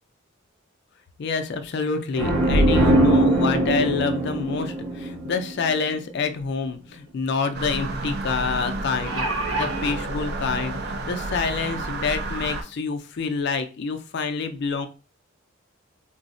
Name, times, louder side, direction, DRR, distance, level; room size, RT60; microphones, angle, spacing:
voice 1, 1.2-9.2 9.5-14.9, left 4 dB, 55° left, 8 dB, 0.4 m, -27 dB
sound 1, 2.1-5.8, right 1 dB, 90° right, 0.9 m, -21 dB
sound 2, 6.6-6.7 7.1-7.2 8.7-10.0 10.9-11.0 11.4-11.5, right 2 dB, 65° right, 0.9 m, -28 dB
sound 3, 7.5-12.6, right 2 dB, 50° right, 0.5 m, -31 dB
3.8 x 2.0 x 2.5 m, 0.35 s
head